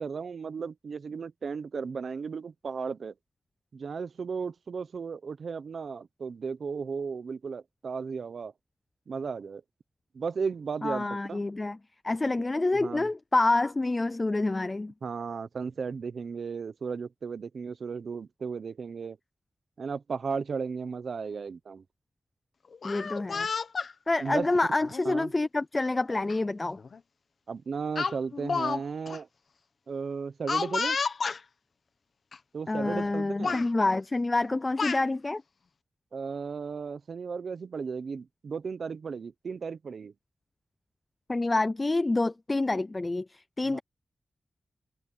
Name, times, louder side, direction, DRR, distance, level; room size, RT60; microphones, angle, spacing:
voice 1, 0.0-3.1 3.7-8.5 9.1-9.6 10.1-11.4 12.7-13.1 15.0-19.2 19.8-21.8 24.2-24.5 25.0-25.3 27.5-29.3 29.9-31.0 32.5-33.6 36.1-40.1 43.7-43.8, right 5 dB, 65° right, 0.8 m, -35 dB
voice 2, 10.8-11.8 12.0-14.9 22.8-23.5 24.1-26.8 32.7-35.4 41.3-43.8, left 2 dB, 25° left, 0.5 m, -27 dB
Speech, 22.7-23.9 24.8-25.0 26.3-26.4 26.8-27.0 28.0-28.8 29.1-29.2 30.5-31.4 32.3-32.4 32.8-33.1 33.4-33.7 34.4-35.0, left 5 dB, 60° left, 1.3 m, -31 dB
wide cardioid pair, 150°, 0 cm